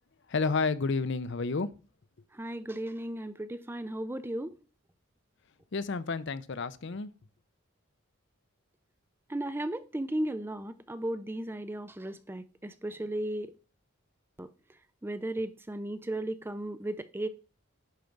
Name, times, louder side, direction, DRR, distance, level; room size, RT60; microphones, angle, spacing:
voice 1, 0.3-1.7 5.7-7.1, left 4 dB, 55° left, 0.6 m, -30 dB
voice 2, 2.3-4.5 9.3-13.5 14.4-14.5 15.0-17.3, right 1 dB, 10° right, 0.4 m, -35 dB
10.5 x 5.2 x 4.5 m
head